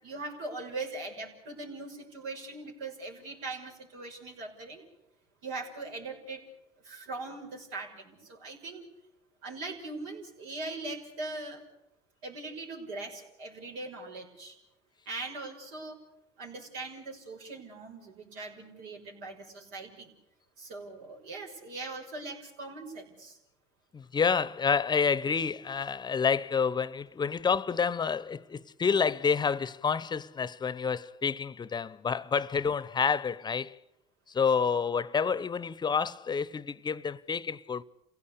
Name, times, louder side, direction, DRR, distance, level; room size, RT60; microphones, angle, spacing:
voice 1, 0.0-4.8 5.4-6.4 6.8-8.9 9.4-11.6 12.2-14.6 15.1-16.0 16.4-20.1 20.6-23.4, right 3 dB, 80° right, 6.2 m, -41 dB
voice 2, 23.9-33.8 34.3-37.8, left 6 dB, 30° left, 0.8 m, -29 dB
28.5 x 17.0 x 8.4 m
supercardioid pair, 85°, 15 cm